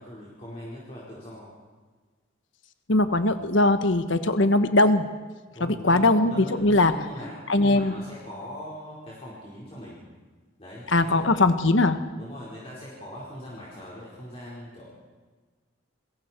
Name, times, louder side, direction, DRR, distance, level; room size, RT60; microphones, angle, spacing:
voice 1, 0.0-1.6 3.4-3.5 5.5-10.0 10.6-11.4 12.2-14.9, equal, 30° left, -7 dB, 4.8 m, -41 dB
voice 2, 2.9-5.1 5.6-6.9 7.5-8.0 10.9-12.0, left 2 dB, 70° left, 9 dB, 1.3 m, -20 dB
30.0 x 22.0 x 4.6 m, 1.4 s
head